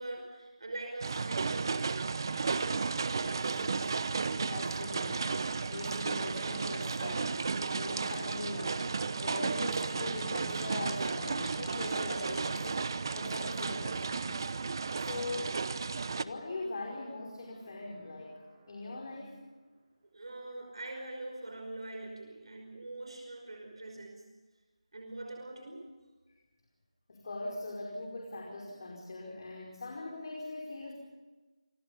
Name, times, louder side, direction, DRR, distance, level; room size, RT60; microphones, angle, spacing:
voice 1, 0.0-2.0 20.1-24.3 24.9-26.0, right 2 dB, 60° right, 3 dB, 5.2 m, -43 dB
sound 1, 1.0-16.2, right 4 dB, 40° right, 1.0 m, -33 dB
voice 2, 3.2-3.9 4.4-7.4 7.7-12.9 13.2-14.4 15.0-15.6 16.1-18.4 18.7-19.4 27.1-30.9, left 2 dB, 45° left, -1 dB, 5.1 m, -41 dB
sound 2, 4.1-19.5, right 2 dB, 15° right, 4.8 m, -58 dB
sound 3, 5.7-12.6, left 3 dB, 60° left, 2.8 m, -51 dB
28.0 x 23.0 x 5.5 m, 1.3 s
figure-of-eight pair, 165°, 3 cm